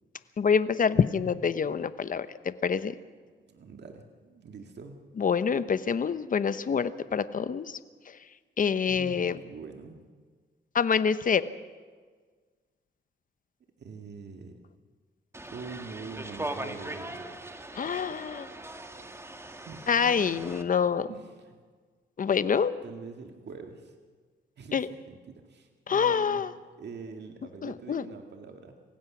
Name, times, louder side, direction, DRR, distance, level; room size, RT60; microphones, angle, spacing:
voice 1, 0.4-2.9 5.2-7.8 8.6-9.4 10.7-11.5 17.7-18.5 19.9-21.1 22.2-22.7 24.7-24.9 25.9-26.5 27.6-28.0, left 6 dB, 45° left, 14 dB, 0.9 m, -26 dB
voice 2, 3.4-5.0 8.9-10.0 13.8-14.6 15.5-17.3 19.7-20.4 21.1-21.6 22.8-23.9 24.6-26.4 26.8-28.8, right 5 dB, 65° right, 4 dB, 1.8 m, -44 dB
sound 1, 15.3-20.6, right 1 dB, 15° right, 1.5 m, -40 dB
27.0 x 16.0 x 6.1 m, 1.5 s
cardioid pair, 100°, 19 cm